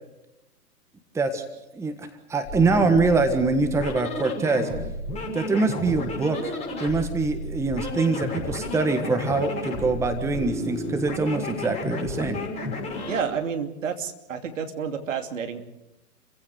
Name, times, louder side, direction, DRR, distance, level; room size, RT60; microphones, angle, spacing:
voice 1, 1.7-4.7 5.3-6.5 6.8-12.4, right 3 dB, 5° right, 7 dB, 1.4 m, -24 dB
sound 1, 2.4-13.3, left 2 dB, 15° left, 6.3 m, -32 dB
voice 2, 13.1-15.6, right 7 dB, 55° right, 7 dB, 2.8 m, -30 dB
29.0 x 16.0 x 8.0 m, 0.91 s
figure-of-eight pair, 115°, 45 cm